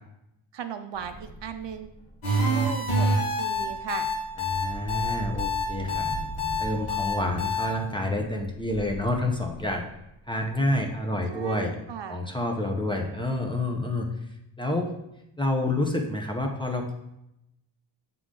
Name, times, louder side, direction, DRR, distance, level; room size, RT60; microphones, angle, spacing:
voice 1, 0.5-1.9 2.5-4.1 11.3-12.2, right 8 dB, 60° right, 8 dB, 0.5 m, -37 dB
sound 1, 0.9-11.1, right 2 dB, 50° left, 2.4 m, -41 dB
sound 2, 2.2-7.7, left 1 dB, 80° left, 1.9 m, -26 dB
voice 2, 4.4-6.1 6.6-9.8 10.3-11.7 12.1-14.1 14.6-14.9 15.4-16.9, left 1 dB, 10° left, 1 dB, 0.7 m, -28 dB
7.8 x 3.7 x 3.8 m, 0.85 s
wide cardioid pair, 120°, 49 cm